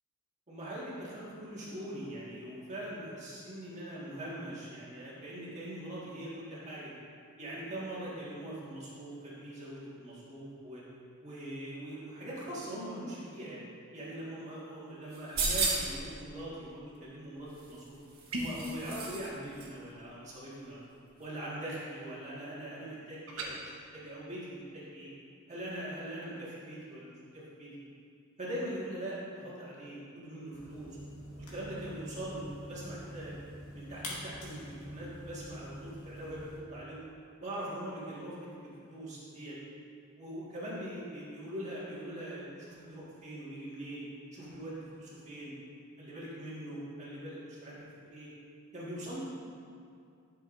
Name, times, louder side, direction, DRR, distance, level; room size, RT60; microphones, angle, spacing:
voice 1, 0.5-6.9 7.4-10.8 11.2-13.6 13.9-17.9 18.3-20.8 21.2-25.1 25.5-27.7 28.4-31.0 31.3-33.3 33.7-37.0 37.4-39.6 40.2-44.0 44.3-45.5 46.0-48.3 48.7-49.2, right 1 dB, 35° right, -7 dB, 1.8 m, -42 dB
sound 1, 15.1-16.0 17.5-19.3 19.6-19.7, right 3 dB, 50° right, 1.7 m, -33 dB
sound 2, 18.3-18.7 23.3-23.5, right 1 dB, 70° right, 1.2 m, -36 dB
sound 3, 30.5-36.6, equal, 75° left, 2.0 m, -45 dB
11.5 x 6.6 x 2.6 m, 2.4 s
head